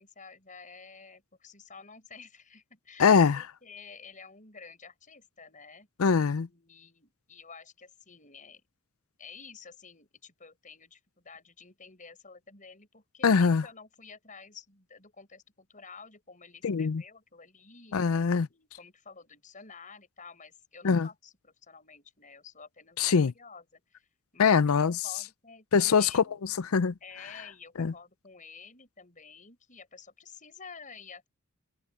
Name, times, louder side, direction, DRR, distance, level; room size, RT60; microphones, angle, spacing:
voice 1, 0.0-5.9 6.5-8.6 9.2-18.0 18.5-24.1 24.3-26.3 27.0-31.3, left 5 dB, 35° left, 6.8 m, -50 dB
voice 2, 3.0-3.4 6.0-6.5 13.2-13.6 16.6-17.0 17.9-18.5 20.8-21.1 23.0-23.3 24.4-25.0 25.7-26.2 26.6-26.9 27.8-27.9, left 5 dB, 75° left, 0.5 m, -23 dB
head